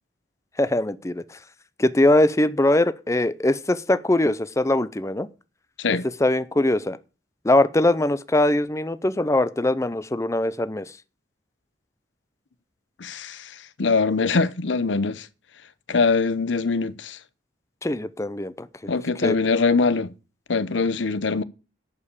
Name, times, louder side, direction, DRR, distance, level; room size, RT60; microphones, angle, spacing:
voice 1, 0.6-1.4 1.8-5.3 6.2-7.0 7.4-10.9 17.8-18.9 19.2-19.4, left 1 dB, 15° left, 0.5 m, -22 dB
voice 2, 13.0-15.3 15.9-17.2 18.9-20.1 20.5-21.4, left 4 dB, 85° left, 0.7 m, -23 dB
11.5 x 5.5 x 8.2 m
head